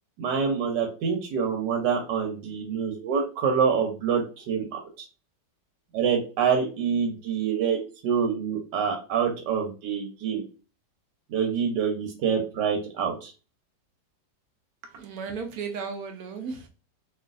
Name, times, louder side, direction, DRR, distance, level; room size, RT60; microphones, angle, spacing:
voice 1, 0.2-4.7 5.9-10.4 11.3-13.3, right 6 dB, 85° right, 1.4 m, -26 dB
voice 2, 14.8-16.7, right 5 dB, 70° right, 1.0 m, -35 dB
3.1 x 2.6 x 2.4 m
omnidirectional pair, 1.8 m